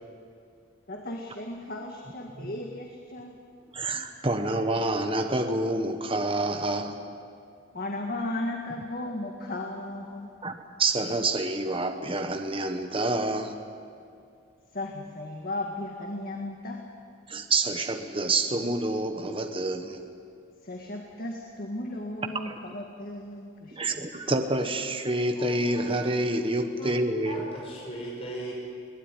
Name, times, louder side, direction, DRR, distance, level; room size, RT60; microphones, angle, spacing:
voice 1, 0.9-3.4 7.7-10.3 14.7-16.9 20.6-23.8 24.1-24.2, left 1 dB, 45° left, 1 dB, 1.9 m, -35 dB
voice 2, 3.7-7.0 10.4-13.6 17.3-20.0 22.5-22.6 23.7-27.4, right 2 dB, 25° right, 6 dB, 1.3 m, -28 dB
voice 3, 25.4-26.4 26.6-26.9 27.2-28.5, right 1 dB, 30° left, -3 dB, 5.0 m, -39 dB
22.5 x 18.5 x 10.0 m, 2.4 s
head